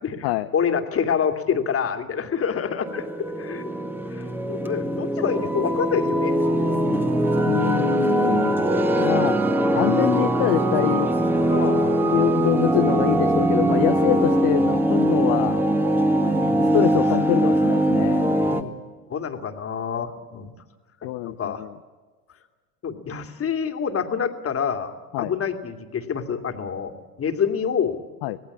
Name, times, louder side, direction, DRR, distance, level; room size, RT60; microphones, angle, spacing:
voice 1, 0.0-3.1 3.4-3.7 4.1-6.3 6.8-7.1 11.5-12.0 15.2-15.5 16.2-16.8 18.5-18.8 19.1-20.5 21.0-21.7 22.8-28.0, left 7 dB, 30° left, 7 dB, 2.5 m, -27 dB
sound 1, 2.8-18.6, right 1 dB, 5° right, 1.9 m, -21 dB
voice 2, 7.3-8.6 9.0-9.4 9.7-11.1 12.1-15.6 16.6-18.3 21.0-21.7 25.1-25.3 28.2-28.4, left 17 dB, 50° left, 9 dB, 0.9 m, -25 dB
Brass instrument, 8.1-12.5, right 6 dB, 45° right, 3.3 m, -37 dB
26.5 x 18.5 x 8.6 m, 1.4 s
figure-of-eight pair, 75°, 44 cm